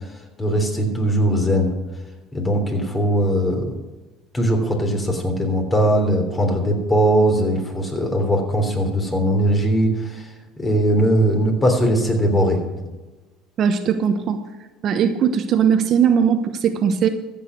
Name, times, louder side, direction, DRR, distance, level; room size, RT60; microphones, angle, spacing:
voice 1, 0.4-1.7 2.3-3.7 4.3-10.3 10.6-12.6, right 1 dB, 20° left, 3 dB, 3.3 m, -20 dB
voice 2, 13.6-14.4 14.8-17.1, right 7 dB, 50° right, 7 dB, 1.0 m, -19 dB
14.5 x 7.4 x 6.5 m, 1.2 s
supercardioid pair, 90°, 0 cm